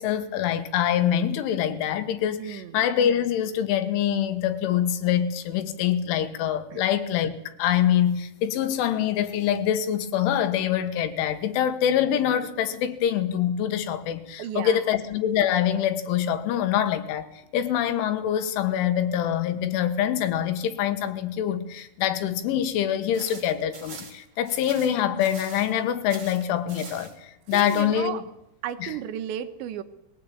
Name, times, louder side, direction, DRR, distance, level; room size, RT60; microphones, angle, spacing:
voice 1, 0.0-28.2 28.8-28.9, left 10 dB, 80° left, 3.8 m, -25 dB
voice 2, 2.4-2.8 6.7-6.8 14.4-14.8 27.5-28.2 28.6-29.8, right 10 dB, 75° right, 3.1 m, -33 dB
sound 1, 23.1-25.8 26.1-27.1 27.5-27.9, right 5 dB, 35° right, 3.6 m, -43 dB
21.0 x 17.5 x 8.6 m
omnidirectional pair, 5.6 m